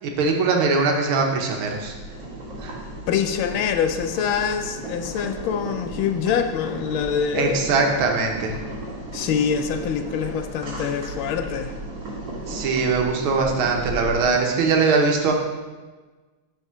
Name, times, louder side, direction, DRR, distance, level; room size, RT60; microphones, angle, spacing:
voice 1, 0.0-1.9 2.6-2.8 7.3-8.6 12.5-15.3, right 4 dB, 75° right, 2 dB, 1.7 m, -21 dB
Boiling, 1.6-14.4, right 1 dB, 60° right, 2.7 m, -35 dB
voice 2, 3.1-7.7 9.1-11.7, left 7 dB, 75° left, 6 dB, 1.3 m, -25 dB
6.8 x 4.3 x 5.8 m, 1.3 s
omnidirectional pair, 2.4 m